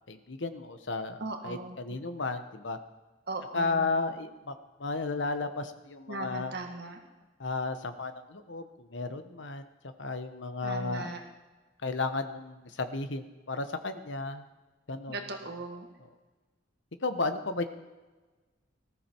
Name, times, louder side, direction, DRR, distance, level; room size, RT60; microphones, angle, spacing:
voice 1, 0.1-2.8 3.5-6.5 7.4-9.7 10.0-11.1 11.8-14.5 14.9-15.2 17.0-17.6, left 3 dB, 75° left, 9 dB, 1.1 m, -33 dB
voice 2, 1.2-1.8 3.3-3.9 6.1-7.0 10.6-11.2 15.1-15.9, right 2 dB, 60° right, 4 dB, 1.7 m, -38 dB
19.5 x 13.5 x 4.6 m, 1.2 s
head